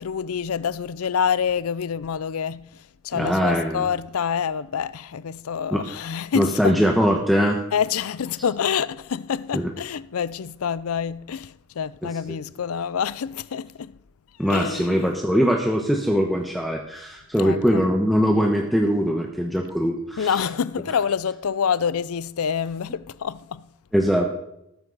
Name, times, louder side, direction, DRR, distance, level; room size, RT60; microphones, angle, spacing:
voice 1, 0.0-2.7 3.0-6.8 7.7-13.9 14.5-15.1 17.4-17.9 20.2-23.6, left 7 dB, 80° left, 0.5 m, -27 dB
voice 2, 3.1-3.9 5.7-5.8 6.3-7.6 9.5-9.7 12.0-12.1 14.4-20.4 23.9-24.2, equal, ahead, 1.0 m, -21 dB
19.0 x 10.0 x 4.0 m
head